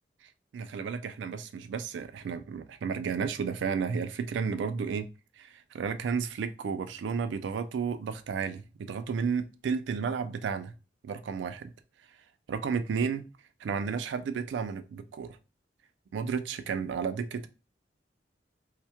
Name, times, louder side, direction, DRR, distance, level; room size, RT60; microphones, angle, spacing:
voice 1, 0.5-5.1 5.4-5.5 5.7-10.7 11.0-11.7 12.5-13.2 13.6-15.4 16.1-17.5, right 6 dB, 85° right, 0.3 m, -32 dB
2.2 x 2.0 x 2.7 m
head